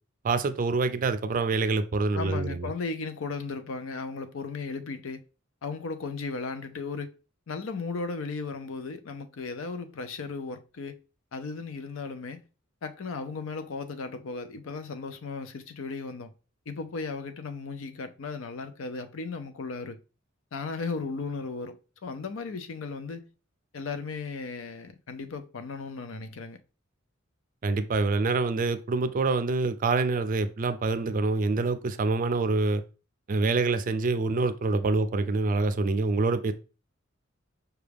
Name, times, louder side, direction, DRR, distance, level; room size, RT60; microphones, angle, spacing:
voice 1, 0.2-2.7 27.6-32.8 33.3-36.5, right 3 dB, 40° right, 0.4 m, -26 dB
voice 2, 2.1-5.2 5.6-7.1 7.5-11.0 11.3-12.4 12.8-16.3 16.7-20.0 20.5-23.3 23.7-26.6, left 4 dB, 75° left, 0.5 m, -36 dB
5.9 x 2.3 x 3.4 m
head